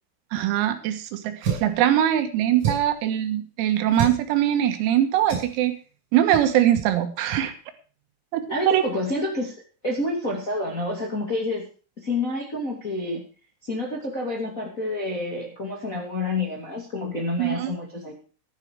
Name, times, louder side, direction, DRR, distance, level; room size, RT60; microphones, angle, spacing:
voice 1, 0.3-5.8 6.1-7.5 8.3-8.9 17.4-17.7, right 11 dB, 90° right, 8 dB, 4.3 m, -22 dB
sound 1, 1.4-1.8 2.6-3.0 3.9-4.2 5.3-5.6 6.3-6.5 6.8-6.9 7.3-7.5, right 8 dB, 40° right, 7.4 m, -28 dB
voice 2, 8.5-9.5 9.8-11.6 12.0-13.2 13.6-18.1, left 2 dB, 30° left, -1 dB, 1.7 m, -28 dB
14.5 x 12.0 x 4.8 m, 0.37 s
omnidirectional pair, 6.0 m